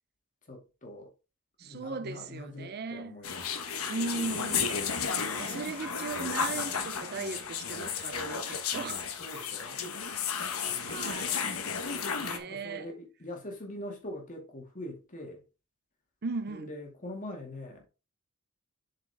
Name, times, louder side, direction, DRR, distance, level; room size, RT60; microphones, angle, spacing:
voice 1, 0.5-1.1 1.6-3.5 9.2-9.8 10.6-11.1 12.3-15.4 16.5-17.9, left 1 dB, 35° left, 2.1 m, -43 dB
voice 2, 1.6-3.2 3.9-4.7 5.4-9.1 10.8-11.5 12.2-12.9 16.2-16.7, right 4 dB, 50° right, 0.6 m, -37 dB
sound 1, 3.2-12.4, left 6 dB, 70° left, 1.2 m, -33 dB
7.5 x 4.8 x 3.5 m
head